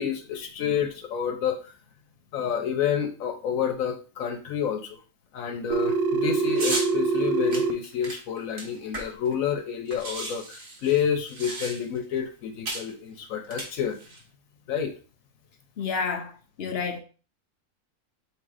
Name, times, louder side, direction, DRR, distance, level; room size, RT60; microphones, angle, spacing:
voice 1, 0.0-1.7 2.3-5.0 5.3-14.0 14.7-14.9, left 8 dB, 85° left, 1.1 m, -29 dB
Telephone, 5.7-7.7, right 4 dB, 85° right, 1.0 m, -24 dB
sound 1, 6.6-6.9 7.5-9.3 9.6-9.7 9.9-12.0 12.7-12.9 13.4-14.2, right 2 dB, 45° right, 1.2 m, -34 dB
voice 2, 15.8-17.0, left 5 dB, 60° left, 0.7 m, -30 dB
3.6 x 3.1 x 4.8 m
omnidirectional pair, 1.4 m